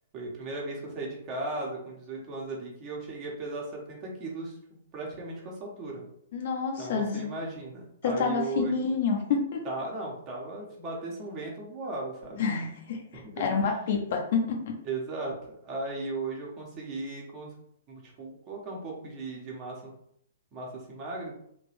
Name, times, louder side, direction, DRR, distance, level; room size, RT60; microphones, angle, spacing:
voice 1, 0.1-4.6 4.9-6.0 6.8-8.7 9.6-12.5 13.1-13.8 14.8-17.5 17.9-19.9 20.5-21.3, right 2 dB, 30° right, -2 dB, 1.3 m, -37 dB
voice 2, 6.3-7.3 8.0-9.6 12.4-14.8, left 5 dB, 50° left, 2 dB, 0.9 m, -28 dB
3.5 x 2.9 x 3.4 m, 0.70 s
figure-of-eight pair, 120°, 0 cm